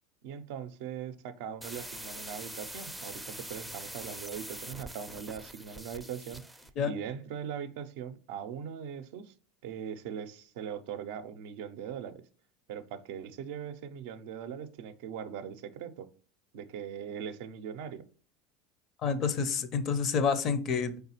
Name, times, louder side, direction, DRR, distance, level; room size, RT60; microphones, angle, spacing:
voice 1, 0.2-6.4 6.8-9.3 9.6-12.2 12.7-16.1 16.5-18.0, right 8 dB, 70° right, 0.4 m, -40 dB
sound 1, 1.6-6.7, right 1 dB, ahead, 0.4 m, -43 dB
voice 2, 19.0-21.0, left 6 dB, 50° left, 0.5 m, -28 dB
3.9 x 3.4 x 2.9 m
hypercardioid pair, 85°, 0 cm